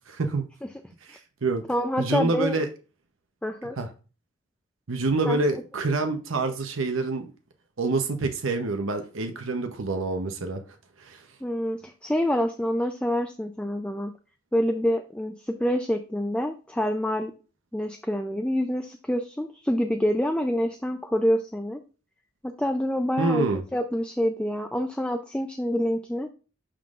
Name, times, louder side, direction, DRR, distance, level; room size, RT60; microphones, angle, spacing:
voice 1, 0.1-0.5 1.1-1.6 2.0-2.7 3.8-3.9 4.9-7.3 7.8-10.6 11.0-11.2 23.2-23.6, right 3 dB, 85° right, 0.8 m, -27 dB
voice 2, 1.7-2.6 3.4-3.8 5.3-5.4 11.4-14.1 14.5-17.3 17.7-21.8 22.4-23.5 23.7-26.3, equal, 5° left, 0.4 m, -27 dB
11.5 x 3.8 x 2.4 m
head